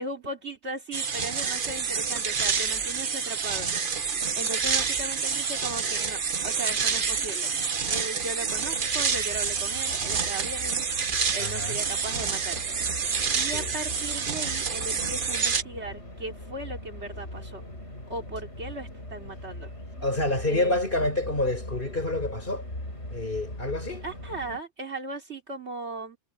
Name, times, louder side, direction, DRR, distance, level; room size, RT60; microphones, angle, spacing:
voice 1, 0.0-3.7 4.0-7.5 7.9-10.9 11.3-12.8 13.0-17.6 18.1-19.7 20.5-21.1 24.0-26.2, right 2 dB, 65° right, 3.1 m, -37 dB
sound 1, 0.9-15.6, right 5 dB, 45° right, 1.2 m, -28 dB
sound 2, 8.5-24.6, left 1 dB, 65° left, 7.9 m, -41 dB
voice 2, 11.4-11.8 13.4-13.7 20.0-22.7 23.1-24.1, left 2 dB, 45° left, 5.5 m, -28 dB
omnidirectional pair, 1.3 m